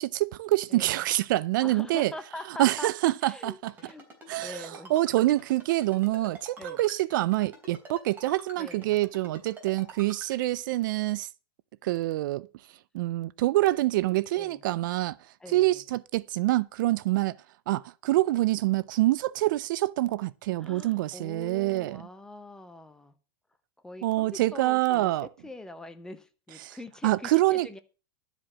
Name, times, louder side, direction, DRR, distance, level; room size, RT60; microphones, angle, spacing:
voice 1, 0.0-2.1 2.6-3.7 4.3-11.3 11.8-12.5 12.9-15.2 15.5-17.3 17.7-22.0 24.0-25.3 26.6-26.8 27.0-27.8, right 17 dB, 55° right, 0.4 m, -26 dB
voice 2, 0.7-1.0 1.6-2.9 3.2-4.0 4.4-4.9 6.6-6.8 8.6-9.0 14.4-14.6 15.4-15.8 20.6-23.1 23.8-27.8, left 2 dB, 5° left, 0.8 m, -43 dB
Ringtone, 3.7-10.5, right 2 dB, 15° right, 3.4 m, -46 dB
12.0 x 5.0 x 7.3 m
supercardioid pair, 160°, 13 cm